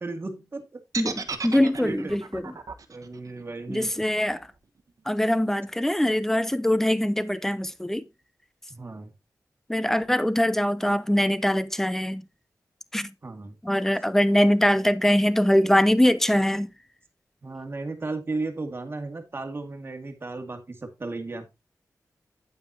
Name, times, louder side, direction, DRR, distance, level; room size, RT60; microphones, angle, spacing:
voice 1, 0.0-0.8 1.3-2.2 2.9-3.9 8.7-9.1 13.2-13.6 17.4-21.5, right 3 dB, 40° right, 2.1 m, -35 dB
sound 1, 0.9-5.0, right 5 dB, 65° right, 1.3 m, -36 dB
voice 2, 1.0-2.5 3.7-4.4 5.1-8.0 9.7-12.2 12.9-13.1 13.6-16.7, left 1 dB, 5° left, 0.8 m, -22 dB
9.4 x 8.9 x 2.8 m
wide cardioid pair, 95°, 6 cm